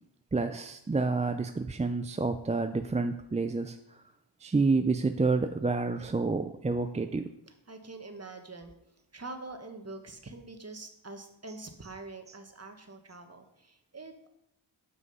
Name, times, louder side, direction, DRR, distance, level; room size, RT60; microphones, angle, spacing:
voice 1, 0.3-3.8 4.4-7.3 11.5-11.9 12.3-12.4, right 3 dB, 15° right, 7 dB, 0.4 m, -29 dB
voice 2, 7.7-8.7 9.1-14.3, right 3 dB, 30° right, 6 dB, 1.3 m, -45 dB
7.5 x 6.2 x 5.5 m, 0.79 s
wide cardioid pair, 65°, 48 cm